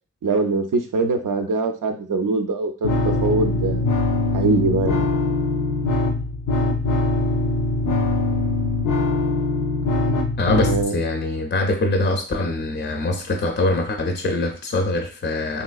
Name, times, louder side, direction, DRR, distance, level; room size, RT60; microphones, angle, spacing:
voice 1, 0.2-3.8 4.3-5.1 10.6-11.0, right 3 dB, 85° right, 5 dB, 0.5 m, -22 dB
sound 1, 2.8-10.8, left 2 dB, 80° left, 0.5 m, -22 dB
voice 2, 10.4-15.6, left 2 dB, 35° left, 4 dB, 0.4 m, -23 dB
3.2 x 2.8 x 2.3 m, 0.37 s
wide cardioid pair, 50°, 31 cm